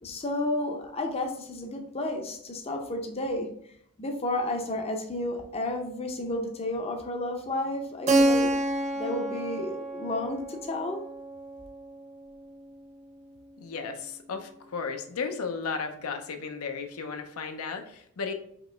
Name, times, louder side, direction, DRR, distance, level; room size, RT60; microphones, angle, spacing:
voice 1, 0.0-3.5 4.0-8.5 8.9-11.0, left 1 dB, 25° left, 3 dB, 0.6 m, -32 dB
Keyboard (musical), 8.1-12.6, right 1 dB, 30° right, 0.4 m, -28 dB
voice 2, 13.6-18.3, left 5 dB, 75° left, 6 dB, 0.5 m, -34 dB
5.1 x 2.9 x 3.3 m, 0.66 s
head